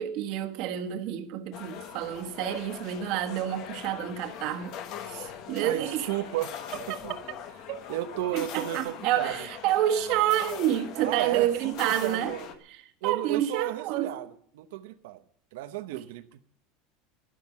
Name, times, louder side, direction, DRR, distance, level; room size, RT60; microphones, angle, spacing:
voice 1, 0.0-4.7 5.1-6.1 7.7-8.0 8.3-12.3 12.7-14.2 15.9-16.0, right 12 dB, 45° right, 1.4 m, -29 dB
sound 1, 1.5-12.6, left 8 dB, 40° left, 1.3 m, -41 dB
voice 2, 5.6-6.6 7.0-7.2 7.9-9.3 10.9-12.5 13.0-15.2 15.5-16.4, right 15 dB, 85° right, 0.9 m, -33 dB
12.0 x 11.5 x 7.0 m
cardioid pair, 180°, 0 cm